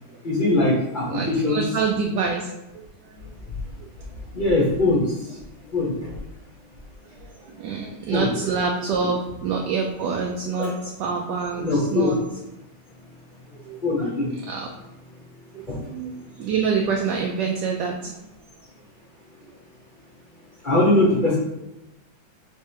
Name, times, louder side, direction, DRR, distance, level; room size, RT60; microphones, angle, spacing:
voice 1, 0.2-1.6 4.3-5.4 5.7-6.2 8.1-8.3 10.6-10.7 11.6-12.1 13.8-14.3 15.7-15.8 20.6-21.4, left 2 dB, 35° left, -5 dB, 0.8 m, -21 dB
voice 2, 1.1-3.3 3.8-4.2 7.0-12.2 13.5-14.1 14.5-14.7 15.5-18.2 19.5-19.6, right 5 dB, 75° right, 0 dB, 1.1 m, -27 dB
3.5 x 3.2 x 4.4 m, 0.97 s
omnidirectional pair, 2.1 m